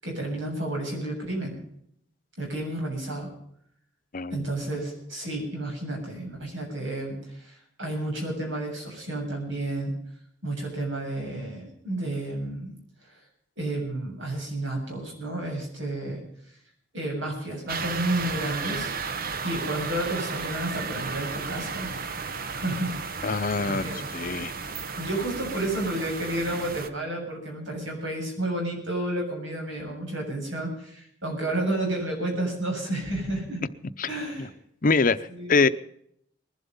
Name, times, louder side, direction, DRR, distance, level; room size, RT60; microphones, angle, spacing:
voice 1, 0.0-1.6 2.4-3.3 4.3-9.9 10.4-12.7 13.6-16.2 16.9-18.9 19.4-21.9 22.5-22.9 23.6-24.0 25.0-33.6 34.1-34.5 35.3-35.6, right 1 dB, 85° right, 1 dB, 7.5 m, -31 dB
voice 2, 4.1-4.4 23.2-23.9 24.1-24.5 34.0-34.1 34.4-34.5 34.8-35.2 35.5-35.7, left 4 dB, 45° left, 12 dB, 0.7 m, -23 dB
sound 1, 17.7-26.9, right 5 dB, 55° right, 1.1 m, -34 dB
20.5 x 11.5 x 5.5 m, 0.70 s
head